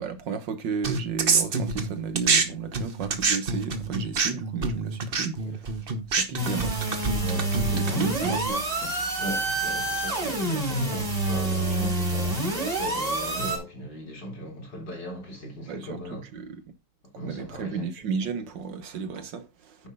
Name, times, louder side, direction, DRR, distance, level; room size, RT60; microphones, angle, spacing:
voice 1, 0.0-5.6 6.1-6.8 7.7-8.9 15.7-16.6 17.1-19.8, right 5 dB, 90° right, 1.9 m, -33 dB
sound 1, 0.8-2.4 2.7-8.5, right 4 dB, 35° right, 1.1 m, -26 dB
sound 2, 6.4-13.6, right 2 dB, 65° right, 5.2 m, -27 dB
voice 2, 7.2-8.1 9.2-16.2 17.2-17.9, equal, 75° left, 4.6 m, -37 dB
9.9 x 5.9 x 4.0 m
omnidirectional pair, 1.9 m